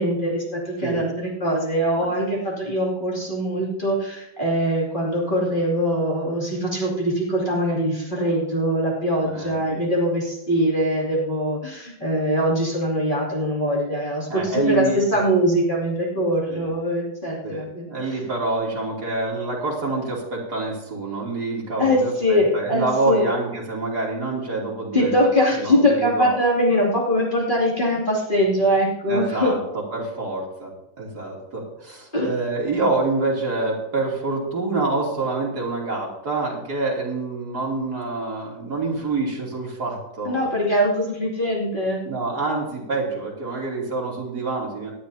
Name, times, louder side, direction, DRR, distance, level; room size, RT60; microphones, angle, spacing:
voice 1, 0.0-17.9 21.8-23.3 24.9-29.5 32.1-32.3 40.2-42.0, equal, 25° left, -4 dB, 2.9 m, -22 dB
voice 2, 9.3-9.8 14.3-15.0 16.5-16.7 17.4-25.2 25.6-26.3 29.1-29.6 29.9-40.5 42.0-44.9, right 3 dB, 60° right, -3 dB, 3.5 m, -26 dB
18.0 x 12.0 x 2.8 m, 0.83 s
omnidirectional pair, 2.0 m